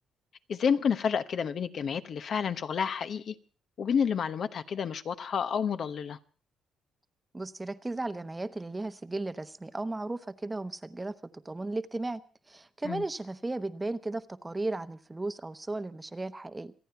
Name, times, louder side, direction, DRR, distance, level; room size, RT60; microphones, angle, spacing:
voice 1, 0.5-3.3 3.8-6.2 12.8-13.0, left 7 dB, 55° left, 11 dB, 1.0 m, -29 dB
voice 2, 7.3-12.2 12.5-16.7, right 2 dB, 15° right, 13 dB, 0.9 m, -35 dB
26.5 x 9.2 x 5.7 m, 0.40 s
cardioid pair, 90°, 0 cm